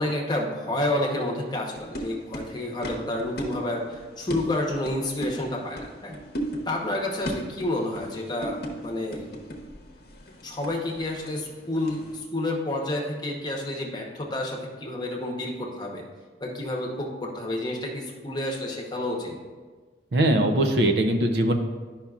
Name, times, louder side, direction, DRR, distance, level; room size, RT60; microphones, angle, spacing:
voice 1, 0.0-6.2 6.7-9.3 10.4-16.0 16.4-19.4, left 1 dB, 20° left, -1 dB, 0.9 m, -29 dB
sound 1, 1.7-12.2, equal, 55° left, 0.9 m, -38 dB
voice 2, 20.1-21.5, right 1 dB, 60° right, 5 dB, 0.6 m, -21 dB
10.0 x 5.7 x 2.4 m, 1.4 s
head